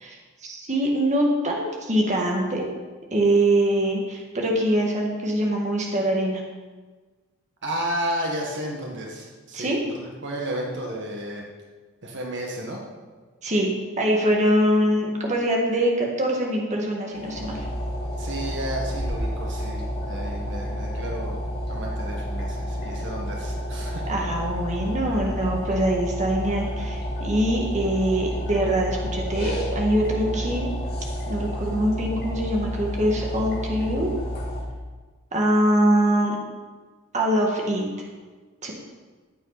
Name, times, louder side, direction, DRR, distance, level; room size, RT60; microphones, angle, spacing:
voice 1, 0.0-2.7 3.1-6.4 9.5-9.8 13.4-13.7 14.0-17.6 24.1-30.7 31.3-34.1 35.3-36.4 37.1-37.9 38.6-38.7, right 1 dB, 35° right, -1 dB, 1.9 m, -23 dB
voice 2, 7.6-11.5 12.0-12.8 18.2-21.4 21.7-24.2, right 1 dB, 55° right, -1 dB, 1.6 m, -32 dB
sound 1, 17.1-34.6, equal, 45° left, 2.9 m, -30 dB
14.5 x 9.0 x 4.1 m, 1.4 s
head